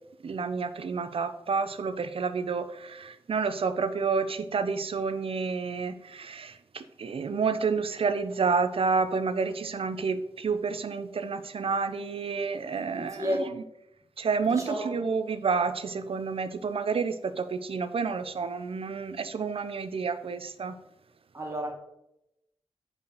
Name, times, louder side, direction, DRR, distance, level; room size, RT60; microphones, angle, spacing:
voice 1, 0.2-13.5 14.2-20.7, right 5 dB, 70° right, 11 dB, 0.7 m, -29 dB
voice 2, 12.9-13.4 14.5-14.8 21.3-21.7, equal, 30° right, -1 dB, 2.7 m, -31 dB
5.3 x 5.3 x 6.5 m, 0.84 s
cardioid pair, 60°, 10 cm